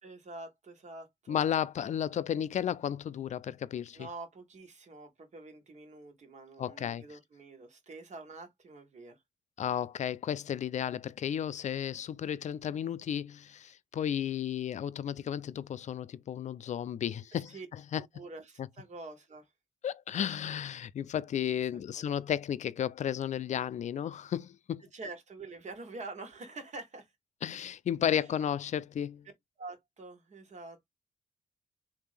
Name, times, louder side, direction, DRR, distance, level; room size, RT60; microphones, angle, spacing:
voice 1, 0.0-1.4 3.9-9.2 17.3-17.7 17.9-19.5 21.7-22.1 24.9-27.1 28.2-28.3 29.6-30.9, right 3 dB, 55° right, 1.6 m, -46 dB
voice 2, 1.3-4.1 6.6-7.0 9.6-17.6 17.9-18.0 18.6-18.7 19.8-24.8 27.4-29.2, left 9 dB, 55° left, 0.4 m, -33 dB
3.4 x 2.8 x 3.3 m
cardioid pair, 65°, 14 cm